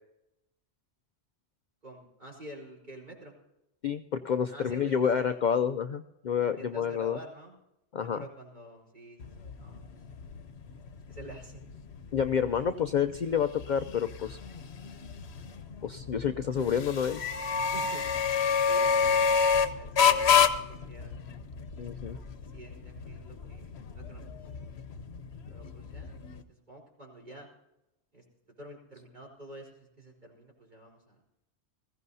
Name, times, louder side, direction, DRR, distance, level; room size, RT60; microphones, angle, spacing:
voice 1, 1.8-3.4 4.5-5.4 6.6-7.5 8.0-9.2 9.6-9.8 10.9-11.6 12.4-12.6 17.6-18.3 18.7-21.2 21.8-24.5 25.5-27.5 28.1-31.2, right 1 dB, 40° right, -3 dB, 4.4 m, -48 dB
voice 2, 3.8-7.2 7.9-8.2 12.1-14.4 15.8-17.2 21.8-22.2, left 7 dB, 55° left, 9 dB, 0.6 m, -29 dB
sound 1, 9.2-26.4, left 6 dB, 70° left, 1.1 m, -29 dB
20.5 x 15.0 x 2.7 m, 0.88 s
omnidirectional pair, 1.1 m